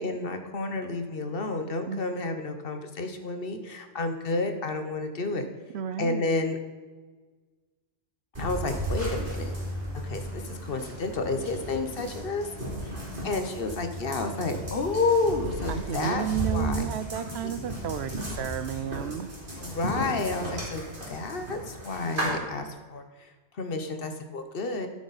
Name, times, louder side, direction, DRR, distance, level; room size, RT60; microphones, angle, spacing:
voice 1, 0.0-5.4 6.0-6.6 8.4-9.5 10.0-12.5 13.2-16.2 16.5-16.9 17.4-17.5 19.6-23.0 23.6-24.9, left 3 dB, 55° left, 7 dB, 1.1 m, -30 dB
voice 2, 5.7-6.3 15.7-19.3, right 9 dB, 70° right, 12 dB, 0.9 m, -32 dB
sound 1, 8.3-22.3, right 1 dB, 45° right, 3.5 m, -35 dB
13.0 x 8.5 x 4.1 m, 1.4 s
omnidirectional pair, 1.2 m